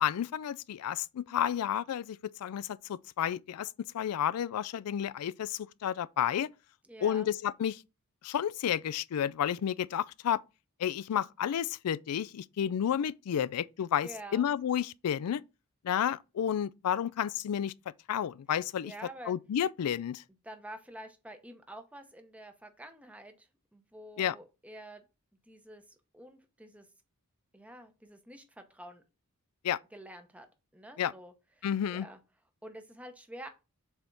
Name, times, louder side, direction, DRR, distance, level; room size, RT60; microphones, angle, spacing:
voice 1, 0.0-6.5 7.0-7.8 8.2-10.4 10.8-15.4 15.8-17.7 18.1-18.9 19.3-20.2 24.2-24.4 29.6-29.8 31.0-31.1 31.6-32.1, left 9 dB, 85° left, 0.3 m, -31 dB
voice 2, 6.9-7.3 14.0-14.4 18.8-19.3 20.4-25.0 25.5-26.9 27.5-29.0 29.9-30.5 30.7-32.2 32.6-33.5, right 1 dB, 5° right, 0.8 m, -48 dB
7.1 x 3.5 x 3.9 m
head